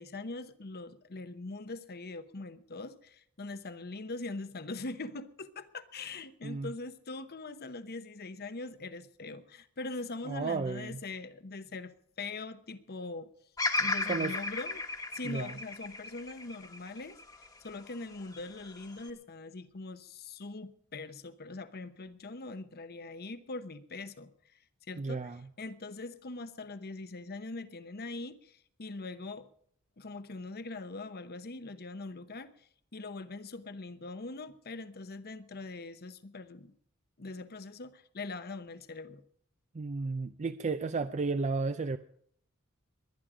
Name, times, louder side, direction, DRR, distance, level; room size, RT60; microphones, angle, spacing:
voice 1, 0.0-11.9 12.2-13.3 13.8-14.8 15.1-17.2 17.6-24.3 24.9-25.3 25.6-29.5 30.0-36.7 37.2-39.2, left 3 dB, 45° left, 12 dB, 0.9 m, -42 dB
voice 2, 10.3-11.0 14.1-14.3 15.2-15.6 25.0-25.5 39.7-42.0, right 4 dB, 35° right, 10 dB, 0.5 m, -33 dB
Bird vocalization bird call bird song, 13.6-17.8 18.3-19.1, left 3 dB, 20° left, 1.3 m, -34 dB
21.5 x 10.5 x 4.9 m, 0.64 s
head